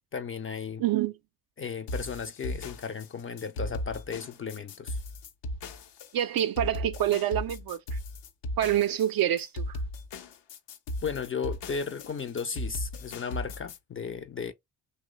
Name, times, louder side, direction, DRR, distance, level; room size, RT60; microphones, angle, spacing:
voice 1, 0.1-0.8 1.6-5.0 11.0-14.5, left 6 dB, 30° left, 0.4 m, -35 dB
voice 2, 0.8-1.1 6.1-8.0 8.6-9.6, right 12 dB, 55° right, 0.4 m, -26 dB
sound 1, 1.9-13.8, left 1 dB, 70° left, 0.7 m, -37 dB
2.9 x 2.1 x 3.7 m
supercardioid pair, 50°, 44 cm